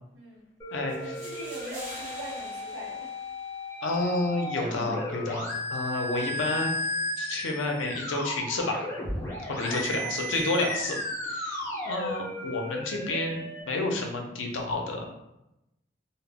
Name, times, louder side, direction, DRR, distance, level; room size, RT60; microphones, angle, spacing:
sound 1, 0.6-13.6, left 1 dB, 15° left, 0.6 m, -35 dB
sound 2, 0.9-3.9, equal, 35° right, 0.7 m, -46 dB
voice 1, 1.0-3.2 9.6-10.9, equal, 75° right, -6 dB, 0.7 m, -41 dB
voice 2, 3.8-6.7 7.2-8.8 9.4-10.9 11.3-15.1, left 2 dB, 80° left, 1 dB, 0.5 m, -30 dB
2.0 x 2.0 x 3.4 m, 0.88 s
head